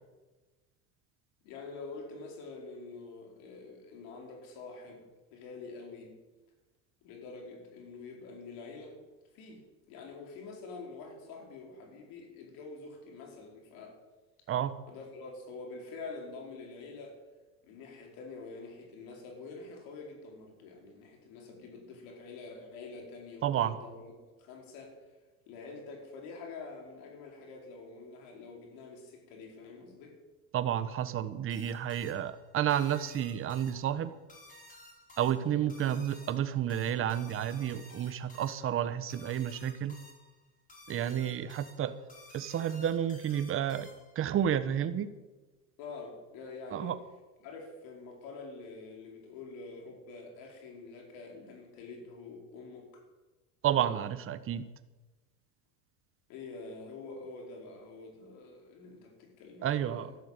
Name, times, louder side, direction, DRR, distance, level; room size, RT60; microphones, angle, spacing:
voice 1, 1.4-5.0 5.3-6.1 7.0-9.0 9.3-14.0 14.9-17.2 17.6-25.0 25.5-30.2 45.8-46.9 47.4-53.0 56.3-60.2, left 3 dB, 65° left, 1 dB, 4.7 m, -46 dB
voice 2, 23.4-23.8 30.5-34.1 35.2-40.0 40.9-42.0 42.3-43.9 44.1-45.1 46.7-47.0 53.6-54.7 59.6-60.1, right 10 dB, 35° right, 12 dB, 1.1 m, -31 dB
sound 1, 31.5-44.3, left 1 dB, 20° left, 4.7 m, -55 dB
13.0 x 12.0 x 8.2 m, 1.2 s
supercardioid pair, 125°, 37 cm